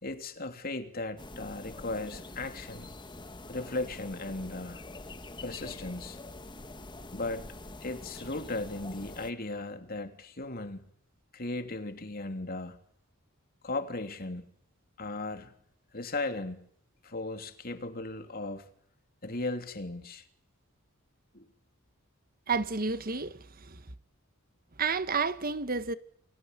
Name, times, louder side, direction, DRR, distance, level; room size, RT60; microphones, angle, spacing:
voice 1, 0.0-2.9 3.5-4.8 5.4-6.2 7.1-7.5 7.8-10.9 11.3-12.8 13.6-14.5 15.0-15.5 15.9-16.6 17.0-18.7 19.2-20.2 21.3-21.5, left 2 dB, 45° left, 3.3 m, -36 dB
sound 1, 1.2-9.3, left 2 dB, 20° left, 1.6 m, -45 dB
voice 2, 22.5-23.8 24.8-26.0, right 4 dB, 40° right, 1.5 m, -31 dB
29.5 x 22.0 x 8.4 m
head